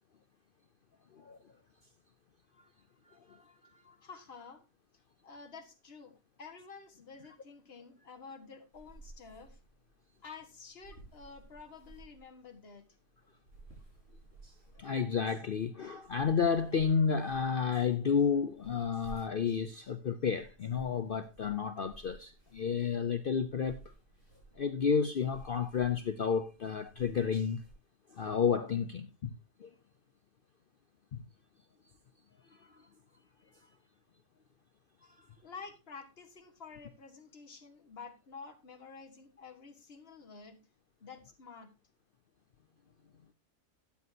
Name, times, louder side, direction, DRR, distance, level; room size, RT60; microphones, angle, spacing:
voice 1, 3.1-3.4 3.9-4.0 14.8-23.8 24.6-27.6 28.1-29.3 29.6-29.7 31.1-31.2, left 6 dB, 65° left, 0.5 m, -31 dB
voice 2, 4.0-4.6 5.2-9.6 10.2-12.9 35.4-40.6 41.0-41.7, left 5 dB, 40° left, 1.7 m, -50 dB
sound 1, 8.7-27.7, right 2 dB, 40° right, 5.7 m, -57 dB
13.0 x 9.5 x 2.7 m
omnidirectional pair, 1.7 m